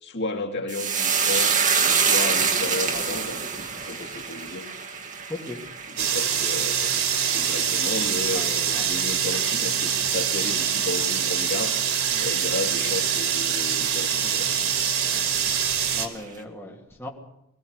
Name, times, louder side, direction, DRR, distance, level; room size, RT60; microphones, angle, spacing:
voice 1, 0.0-4.7 5.9-11.8 12.2-14.5, left 2 dB, 55° left, 2 dB, 2.5 m, -33 dB
sound 1, 0.7-9.3 9.6-10.3 10.5-10.8, right 6 dB, 40° right, 2.1 m, -26 dB
voice 2, 5.3-5.6 8.3-8.9 12.1-12.3 14.1-14.8 15.1-15.6 15.9-17.1, left 2 dB, 10° left, -1 dB, 2.9 m, -39 dB
sound 2, 6.0-16.1, right 8 dB, 85° right, 3.1 m, -24 dB
21.5 x 16.0 x 8.3 m, 0.80 s
head